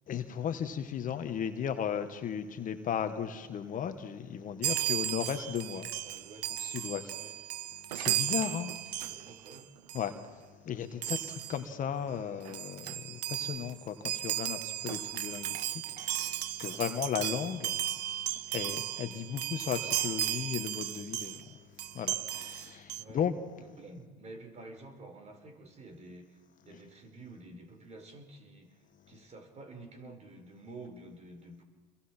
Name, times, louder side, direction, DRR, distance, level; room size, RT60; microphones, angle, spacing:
voice 1, 0.1-5.9 6.6-7.1 7.9-9.2 9.9-10.4 10.6-18.1 18.5-21.5 21.9-23.3, left 8 dB, 40° left, 1.6 m, -36 dB
Chime, 4.6-9.6 9.9-10.1 11.0-11.6 12.2-12.3 12.4-21.4 21.8-23.0, right 13 dB, 90° right, 0.6 m, -35 dB
voice 2, 6.0-6.5 7.1-7.4 9.0-9.7 23.0-23.3 23.6-26.4 26.7-28.8 29.1-31.6, right 2 dB, 35° right, 4.1 m, -49 dB
29.0 x 22.0 x 4.5 m
hypercardioid pair, 85°, 20 cm